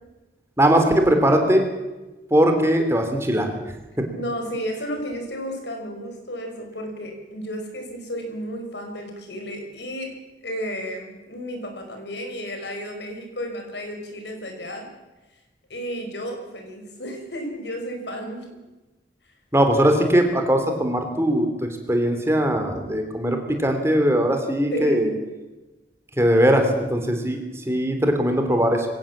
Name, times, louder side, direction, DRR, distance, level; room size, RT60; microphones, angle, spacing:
voice 1, 0.6-1.6 2.3-3.5 4.0-4.1 19.5-21.5 21.9-25.1 26.2-28.9, right 1 dB, 15° right, 5 dB, 3.1 m, -20 dB
voice 2, 4.1-10.2 10.4-14.9 15.7-18.4 24.7-25.2, equal, 80° left, 4 dB, 5.8 m, -32 dB
22.0 x 18.0 x 7.4 m, 1.1 s
head